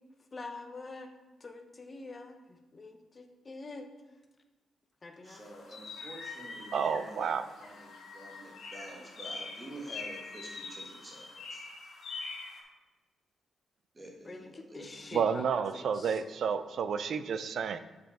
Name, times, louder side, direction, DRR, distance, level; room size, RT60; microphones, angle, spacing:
voice 1, 0.3-1.1 1.4-3.9 5.0-5.4 14.3-16.2, left 3 dB, 25° left, 4 dB, 0.7 m, -45 dB
sound 1, 5.2-12.6, left 3 dB, 75° left, 1.5 m, -44 dB
voice 2, 5.2-7.3 7.6-11.6 13.9-15.2, right 1 dB, 20° right, -1 dB, 1.6 m, -48 dB
voice 3, 6.7-7.4 15.1-17.8, right 6 dB, 60° right, 11 dB, 0.4 m, -30 dB
7.8 x 5.5 x 4.2 m, 1.2 s
wide cardioid pair, 155°, 0 cm